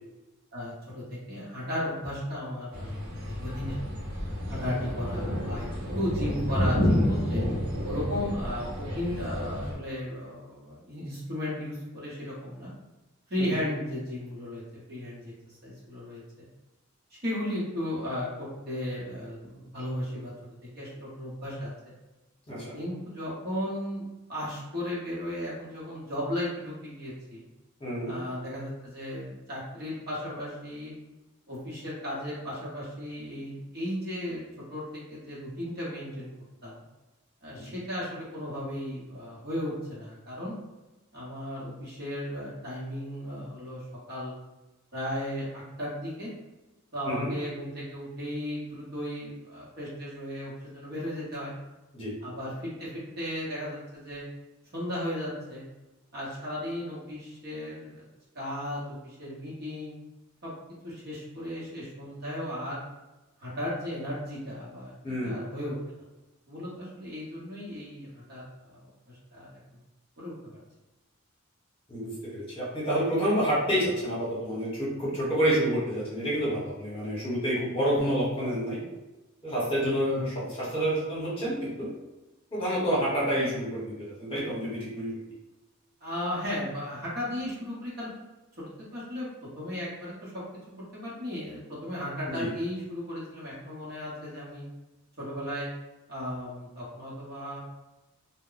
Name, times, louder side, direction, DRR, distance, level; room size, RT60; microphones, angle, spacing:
voice 1, 0.5-3.8 4.5-5.7 5.9-7.4 7.9-12.7 13.3-14.6 14.9-15.3 15.6-16.5 17.1-20.3 20.6-21.7 22.7-24.0 24.3-27.4 28.1-30.9 31.5-36.3 36.6-36.8 37.4-40.5 41.1-43.8 44.1-44.3 44.9-46.3 46.9-51.5 52.2-54.2 54.7-55.6 56.1-58.0 58.3-59.9 60.4-60.5 60.8-62.8 63.4-65.8 66.5-68.8 69.1-69.6 70.2-70.6 80.0-80.4 86.0-88.1 88.6-89.3 89.5-90.3 90.9-94.6 95.2-95.7 96.1-97.6, left 1 dB, 50° right, -7 dB, 1.0 m, -35 dB
sound 1, 2.7-9.8, left 1 dB, 75° right, 0.8 m, -30 dB
voice 2, 27.8-28.1 37.5-37.8 47.0-47.3 51.9-52.1 65.0-65.4 71.9-78.8 79.4-81.9 82.5-85.1 92.3-92.5, equal, 25° left, -7 dB, 1.0 m, -28 dB
2.2 x 2.1 x 3.8 m, 1.1 s
head